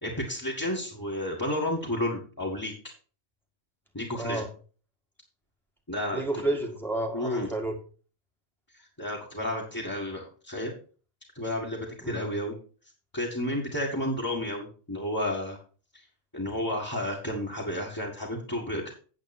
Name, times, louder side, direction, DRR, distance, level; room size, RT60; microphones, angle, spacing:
voice 1, 0.0-2.7 3.9-4.4 5.9-6.2 7.1-7.5 8.7-10.7 11.3-12.5 13.1-15.6 15.9-16.0 16.3-18.9, left 1 dB, 20° left, -4 dB, 1.9 m, -31 dB
voice 2, 4.2-4.5 6.1-7.8 12.0-12.3, right 2 dB, ahead, 1 dB, 1.8 m, -31 dB
9.1 x 8.2 x 4.3 m, 0.39 s
omnidirectional pair, 1.2 m